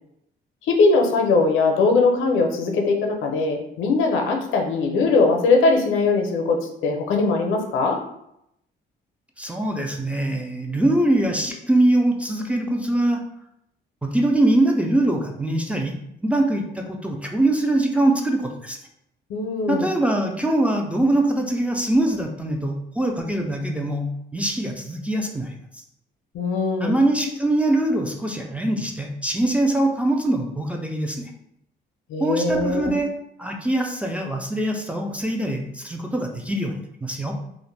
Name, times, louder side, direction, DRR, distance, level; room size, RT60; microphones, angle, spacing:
voice 1, 0.7-8.0 19.3-19.9 26.3-27.0 32.1-33.0, left 3 dB, 85° left, 2 dB, 0.5 m, -20 dB
voice 2, 9.4-13.2 14.0-18.8 19.7-25.5 26.8-31.3 32.2-33.1 33.4-37.4, right 1 dB, 5° right, 2 dB, 0.3 m, -23 dB
2.4 x 2.1 x 3.1 m, 0.78 s
cardioid pair, 90°, 20 cm